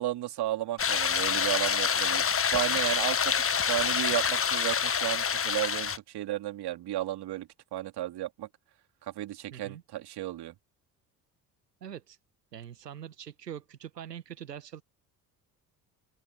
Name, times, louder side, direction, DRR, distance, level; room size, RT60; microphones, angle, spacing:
voice 1, 0.0-2.2 2.5-3.3 3.7-8.5 9.1-10.5, right 14 dB, 55° right, 3.1 m, -33 dB
sound 1, 0.8-6.0, left 7 dB, 30° left, 1.5 m, -27 dB
voice 2, 9.5-9.8 11.8-12.2 12.5-14.8, right 9 dB, 90° right, 1.2 m, -43 dB
open air
figure-of-eight pair, 55°, 47 cm